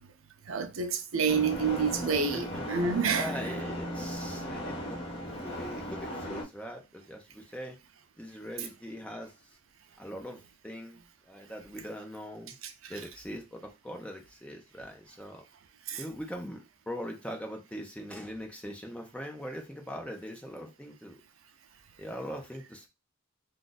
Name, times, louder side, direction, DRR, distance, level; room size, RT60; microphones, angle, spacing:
voice 1, 0.5-3.3 15.9-16.0, right 5 dB, 70° right, 0.5 m, -28 dB
sound 1, 1.3-6.4, equal, 25° left, 1.1 m, -36 dB
voice 2, 2.1-2.6 3.1-5.0 5.4-7.8 8.2-9.3 10.0-11.0 11.3-12.5 12.9-15.4 16.0-21.2 22.0-22.9, equal, 5° left, 0.6 m, -41 dB
2.5 x 2.5 x 3.9 m
head